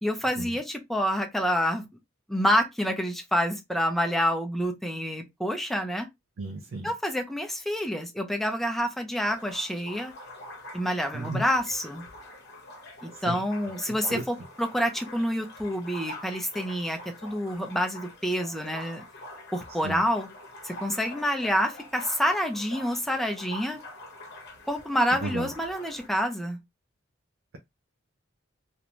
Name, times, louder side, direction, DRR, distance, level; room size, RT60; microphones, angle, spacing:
voice 1, 0.0-1.9 2.3-6.1 6.8-10.1 10.7-12.0 13.0-19.0 19.5-20.3 20.6-23.8 24.7-26.6, equal, ahead, 0.5 m, -28 dB
voice 2, 6.4-6.9 11.1-11.4 13.3-13.4 14.1-14.2 19.8-20.0 25.2-25.5, right 2 dB, 85° right, 0.5 m, -33 dB
sound 1, 9.2-26.1, left 1 dB, 55° left, 0.8 m, -45 dB
2.5 x 2.1 x 2.9 m
head